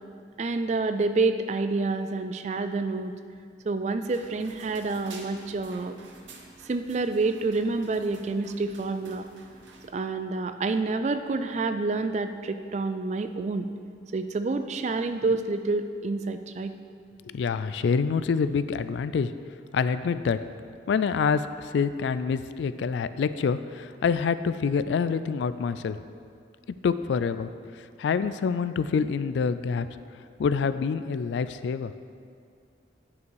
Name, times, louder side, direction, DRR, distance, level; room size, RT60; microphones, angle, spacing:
voice 1, 0.4-3.1 3.7-5.9 6.7-9.3 9.9-13.7 14.1-16.7, right 3 dB, 35° right, 9 dB, 0.3 m, -28 dB
sound 1, 4.1-9.9, right 3 dB, 85° right, 0.9 m, -50 dB
voice 2, 17.2-19.3 19.7-20.4 20.9-26.0 26.8-27.5 28.0-29.9 30.4-31.9, left 5 dB, 75° left, 13 dB, 0.3 m, -26 dB
9.2 x 5.6 x 4.7 m, 2.3 s
head